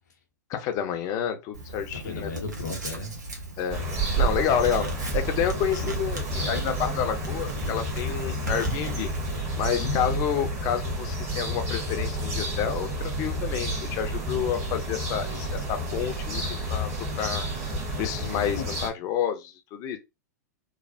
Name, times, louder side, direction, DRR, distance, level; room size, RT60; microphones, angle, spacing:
voice 1, 0.5-2.3 3.6-3.8 4.2-9.1 9.6-16.9 17.2-17.5 18.0-20.0, left 8 dB, 40° left, 0.7 m, -29 dB
Writing, 1.5-9.4, right 2 dB, 80° right, 1.0 m, -38 dB
voice 2, 1.9-3.2 8.3-8.5 9.8-10.2 18.6-18.7, left 4 dB, 75° left, 0.8 m, -35 dB
sound 1, 3.7-18.9, right 1 dB, 30° right, 1.5 m, -30 dB
3.1 x 2.3 x 2.7 m
figure-of-eight pair, 100°, 9 cm